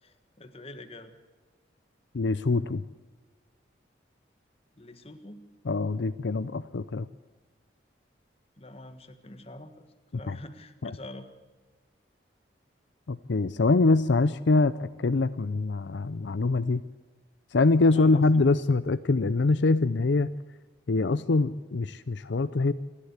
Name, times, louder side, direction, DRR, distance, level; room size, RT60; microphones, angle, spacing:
voice 1, 0.0-1.1 4.8-5.5 8.6-9.8 10.2-11.3 17.8-18.2, left 1 dB, 30° left, 9 dB, 1.5 m, -45 dB
voice 2, 2.1-2.8 5.7-7.1 10.3-10.4 10.8-10.9 13.1-16.8 17.5-20.3 20.9-22.7, left 3 dB, 70° left, 13 dB, 0.6 m, -24 dB
28.5 x 11.5 x 8.1 m, 1.3 s
head